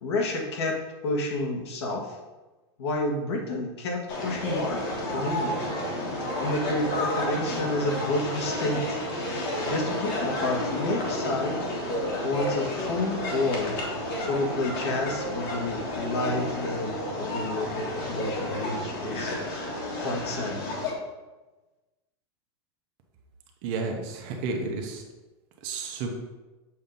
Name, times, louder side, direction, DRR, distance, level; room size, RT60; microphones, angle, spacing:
voice 1, 0.0-2.2 2.8-5.6 6.4-9.0 9.3-11.6 12.2-13.8 14.2-19.4 20.0-20.6, left 2 dB, 70° left, 0 dB, 1.4 m, -30 dB
sound 1, 4.1-20.9, left 1 dB, 45° left, 1.4 m, -31 dB
voice 2, 23.6-25.0 25.6-26.1, right 3 dB, 35° right, 2 dB, 0.7 m, -31 dB
7.2 x 2.7 x 5.2 m, 1.1 s
supercardioid pair, 175°, 15 cm